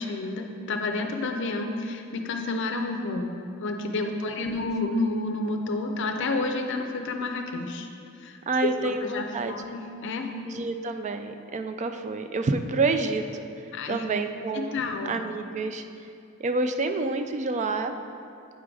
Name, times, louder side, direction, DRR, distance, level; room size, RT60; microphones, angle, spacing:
voice 1, 0.0-3.3 3.6-7.9 8.2-10.3 13.7-14.0 14.5-15.2, left 2 dB, 60° left, 4 dB, 0.5 m, -30 dB
voice 2, 8.5-9.5 10.5-13.2 13.9-15.8 16.4-17.9, right 3 dB, 35° right, 8 dB, 0.3 m, -28 dB
8.1 x 3.8 x 4.7 m, 2.5 s
head